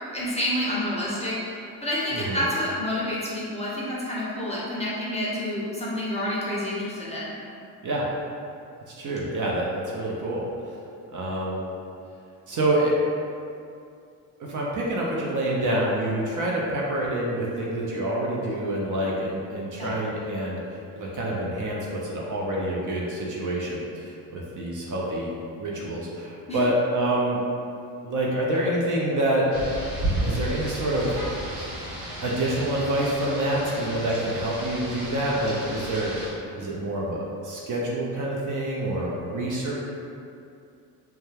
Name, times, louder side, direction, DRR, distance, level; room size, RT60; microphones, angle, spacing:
voice 1, 0.1-1.5 1.8-7.3 19.8-19.9 26.5-26.6, left 1 dB, 15° left, -7 dB, 0.6 m, -28 dB
voice 2, 2.1-2.4 7.8-8.0 8.9-10.4 11.1-11.6 12.5-12.9 14.4-27.4 28.0-29.5 30.2-31.1 32.2-39.8, right 1 dB, 40° right, -4 dB, 0.6 m, -27 dB
Rain, 29.5-36.3, right 1 dB, 85° right, 0.9 m, -33 dB
2.2 x 2.2 x 3.1 m, 2.5 s
hypercardioid pair, 60°, 49 cm